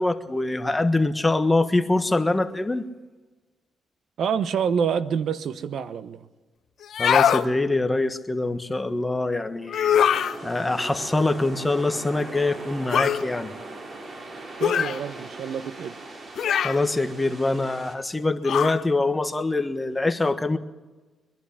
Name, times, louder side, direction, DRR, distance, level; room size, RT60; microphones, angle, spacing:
voice 1, 0.0-2.8 7.0-13.5 16.6-20.6, left 2 dB, 15° left, 8 dB, 1.3 m, -24 dB
voice 2, 4.2-6.3 14.6-15.9, right 7 dB, 70° right, 12 dB, 0.9 m, -27 dB
sound 1, 6.8-7.5 9.7-10.4 12.9-13.2 14.6-15.0 16.4-16.8 18.4-18.8, left 9 dB, 65° left, 1.0 m, -22 dB
sound 2, 9.9-17.9, right 2 dB, 40° right, 4.3 m, -40 dB
23.0 x 11.5 x 10.0 m, 1.2 s
cardioid pair, 90°, 0 cm